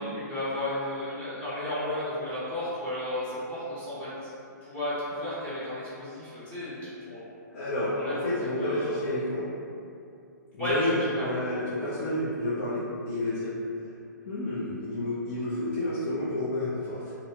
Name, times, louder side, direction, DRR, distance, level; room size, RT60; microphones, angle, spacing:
voice 1, 0.0-4.1 4.6-7.2 7.9-8.1 8.6-9.0 10.6-11.3, left 1 dB, 15° left, -13 dB, 0.9 m, -33 dB
voice 2, 7.5-9.4 10.6-13.6 14.3-17.1, left 1 dB, 45° left, -9 dB, 0.5 m, -30 dB
2.5 x 2.2 x 2.9 m, 2.5 s
hypercardioid pair, 160°, 10 cm